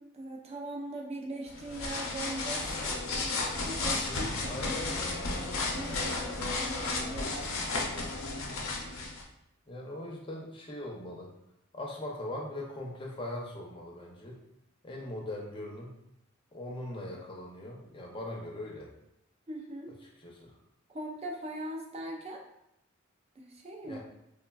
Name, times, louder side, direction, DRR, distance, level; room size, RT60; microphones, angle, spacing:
voice 1, 0.0-3.0 3.6-5.0 5.7-7.5 19.5-19.9 20.9-22.4 23.4-24.0, right 1 dB, 30° right, 0 dB, 0.4 m, -40 dB
sound 1, 1.5-9.2, left 3 dB, 80° left, 0.5 m, -33 dB
voice 2, 4.1-4.8 9.7-11.3 11.7-14.4 14.8-15.9 16.5-18.9 20.2-20.5 23.8-24.0, left 1 dB, 25° left, -2 dB, 0.5 m, -40 dB
3.2 x 2.2 x 2.3 m, 0.84 s
head